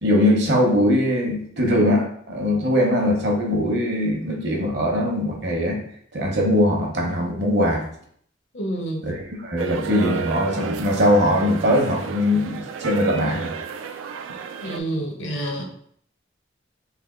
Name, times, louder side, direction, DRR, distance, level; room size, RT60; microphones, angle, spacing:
voice 1, 0.0-5.8 6.1-7.8 9.0-13.5, left 1 dB, 60° right, 0 dB, 0.9 m, -21 dB
voice 2, 8.5-9.1 14.6-15.6, right 1 dB, 65° left, 2 dB, 0.8 m, -28 dB
sound 1, 9.6-14.8, right 6 dB, 90° right, 0.3 m, -32 dB
3.4 x 2.7 x 3.7 m, 0.64 s
head